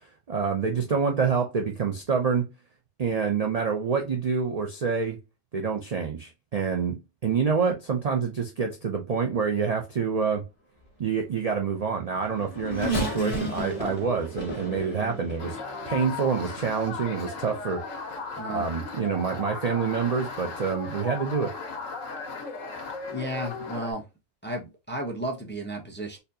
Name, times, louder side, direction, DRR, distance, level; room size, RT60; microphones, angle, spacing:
voice 1, 0.3-2.5 3.0-5.2 5.5-10.4 11.0-15.6 15.9-17.8 18.5-21.5, right 5 dB, 65° right, 0.3 m, -27 dB
Race car auto racing / Accelerating revving vroom, 11.8-16.3 17.0-17.1 18.2-18.4, right 1 dB, 40° left, 1.8 m, -33 dB
sound 1, 15.4-23.9, left 4 dB, 75° left, 1.5 m, -36 dB
voice 2, 23.1-24.0 24.4-26.2, right 1 dB, 15° left, 0.4 m, -33 dB
4.2 x 2.6 x 2.6 m
omnidirectional pair, 1.4 m